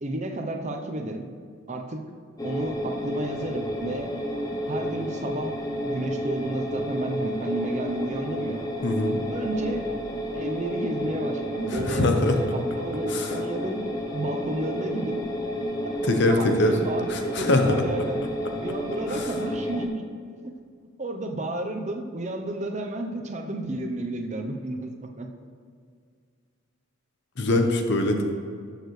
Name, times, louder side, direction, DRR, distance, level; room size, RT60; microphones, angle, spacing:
voice 1, 0.0-1.3 1.7-2.0 2.4-4.1 4.7-8.6 9.3-9.9 10.3-13.8 14.1-15.2 15.8-18.3 18.6-20.0 20.4-20.5 21.0-24.9 25.2-25.3, right 1 dB, 35° right, 4 dB, 0.7 m, -32 dB
sound 1, 2.4-19.9, equal, 15° left, 0.6 m, -31 dB
voice 2, 8.8-9.2 11.7-12.3 13.1-13.3 16.0-16.7 17.1-17.7 19.1-19.2 27.4-28.2, left 2 dB, 55° left, 5 dB, 0.9 m, -23 dB
13.5 x 6.6 x 3.2 m, 2.1 s
head